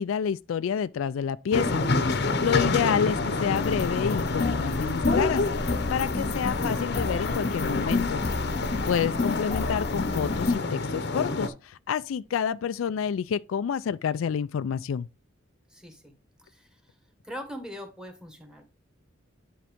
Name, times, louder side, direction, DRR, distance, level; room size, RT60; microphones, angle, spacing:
voice 1, 0.0-8.2 8.9-15.1, left 7 dB, 90° left, 0.3 m, -29 dB
sound 1, 1.5-11.5, left 3 dB, 55° left, 0.8 m, -28 dB
sound 2, 3.5-10.6, left 3 dB, 30° left, 0.5 m, -31 dB
voice 2, 15.7-16.1 16.4-16.8 17.2-18.6, equal, 5° right, 1.5 m, -41 dB
10.0 x 4.0 x 3.5 m
head